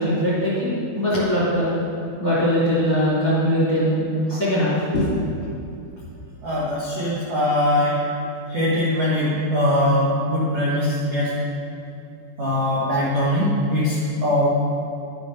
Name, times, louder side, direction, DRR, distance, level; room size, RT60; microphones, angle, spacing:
voice 1, 0.0-1.7 2.2-5.1, equal, 25° left, -9 dB, 2.2 m, -21 dB
voice 2, 6.4-8.0 8.5-11.3 12.4-14.5, left 1 dB, 55° right, -9 dB, 1.9 m, -21 dB
11.5 x 6.9 x 5.8 m, 2.5 s
omnidirectional pair, 5.4 m